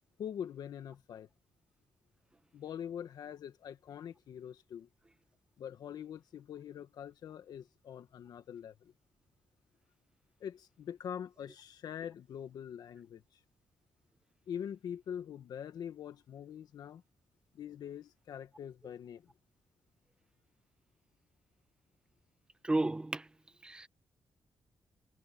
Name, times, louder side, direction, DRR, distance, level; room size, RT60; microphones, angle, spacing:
voice 1, 0.2-1.3 2.5-4.9 5.6-8.9 10.4-13.2 14.5-17.0 17.5-19.3, left 9 dB, 80° left, 1.9 m, -44 dB
voice 2, 22.6-23.3 23.6-23.9, right 2 dB, 15° right, 1.1 m, -32 dB
wide cardioid pair, 150°, 7 cm